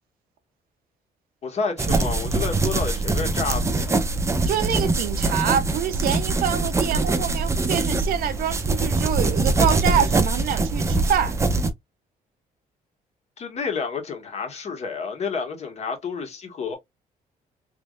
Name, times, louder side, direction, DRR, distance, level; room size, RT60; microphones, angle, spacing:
voice 1, 1.4-4.0 13.4-16.8, left 5 dB, 50° left, 1.5 m, -30 dB
sound 1, 1.8-11.7, right 3 dB, 20° right, 0.6 m, -23 dB
voice 2, 4.5-11.4, right 9 dB, 80° right, 0.7 m, -26 dB
3.4 x 3.2 x 2.4 m
cardioid pair, 130°, 15 cm